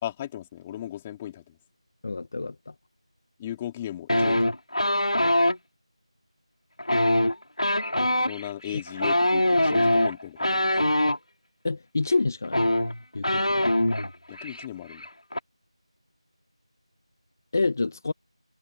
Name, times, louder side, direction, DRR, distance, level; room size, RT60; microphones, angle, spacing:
voice 1, 0.0-1.6 3.4-4.5 8.2-10.7 14.3-15.1, left 12 dB, 10° left, 2.9 m, -36 dB
voice 2, 2.0-2.7 11.6-12.7 13.1-13.7 17.5-18.1, left 3 dB, 30° left, 1.3 m, -28 dB
sound 1, 4.1-5.6 6.8-11.2 12.1-12.2 12.4-14.1 14.4-14.7 14.9-15.4, left 1 dB, 75° left, 4.3 m, -23 dB
figure-of-eight pair, 170°, 3 cm